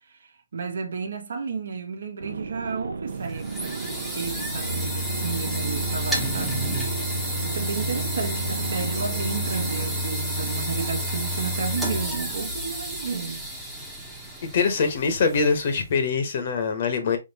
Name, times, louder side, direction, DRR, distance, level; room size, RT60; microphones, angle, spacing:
voice 1, 0.5-6.6 7.4-13.4, right 5 dB, 65° right, 1.1 m, -32 dB
sound 1, 2.2-10.0, right 4 dB, 80° right, 0.6 m, -34 dB
sound 2, 3.1-15.9, equal, ahead, 0.8 m, -30 dB
voice 2, 14.4-17.2, left 5 dB, 40° left, 1.1 m, -23 dB
4.4 x 3.8 x 2.8 m
hypercardioid pair, 165°, 0 cm